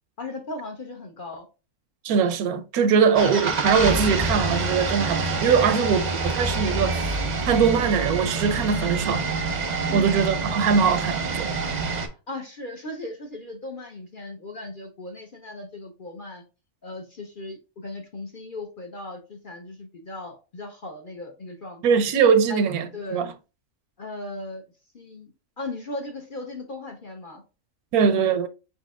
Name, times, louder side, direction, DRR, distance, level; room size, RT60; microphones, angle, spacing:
voice 1, 0.2-1.5 3.0-3.2 6.9-7.0 9.9-10.2 12.3-16.4 16.8-22.0 22.5-22.6 22.9-23.2 24.0-24.6 24.9-27.4, left 2 dB, 45° left, 0.7 m, -37 dB
voice 2, 2.0-7.1 7.5-9.3 9.9-11.5 21.8-23.3 27.9-28.5, right 6 dB, 80° right, 1.1 m, -21 dB
sound 1, 3.1-12.1, right 3 dB, 40° right, 0.7 m, -26 dB
4.8 x 4.2 x 2.4 m
omnidirectional pair, 1.6 m